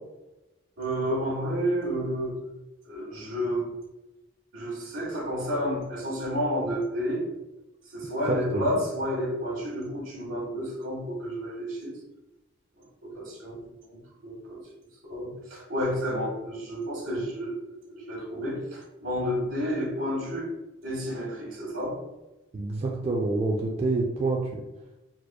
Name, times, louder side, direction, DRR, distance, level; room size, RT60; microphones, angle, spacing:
voice 1, 0.8-2.5 2.8-3.7 4.5-7.3 7.8-12.0 12.8-14.6 15.0-20.5 20.8-22.0, equal, 80° right, -3 dB, 1.4 m, -31 dB
voice 2, 8.3-8.7 22.5-24.6, right 3 dB, 30° right, -1 dB, 0.3 m, -27 dB
4.3 x 2.4 x 2.2 m, 1.0 s
head